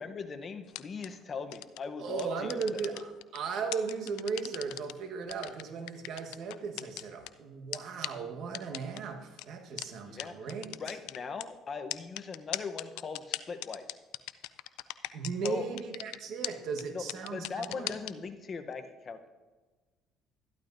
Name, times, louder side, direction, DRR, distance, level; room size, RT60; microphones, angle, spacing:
voice 1, 0.0-2.8 10.0-10.4 10.8-14.0 15.4-15.7 16.9-19.3, left 5 dB, 35° left, 8 dB, 0.8 m, -40 dB
sound 1, 0.7-1.1 1.5-1.8 2.2-3.4 3.7-4.9 5.3-7.3 7.7-7.8 8.0-8.1 8.5-9.0 9.4-9.5 9.8-9.9 10.2-10.3 10.5-11.4 11.9-15.5 15.8-16.2 16.4-16.5 16.8-16.9 17.1-18.1, left 18 dB, 85° left, 0.4 m, -37 dB
voice 2, 2.0-11.0 15.1-18.0, right 5 dB, 65° right, 4 dB, 1.3 m, -37 dB
13.0 x 12.0 x 2.6 m, 1.3 s
cardioid pair, 110°, 0 cm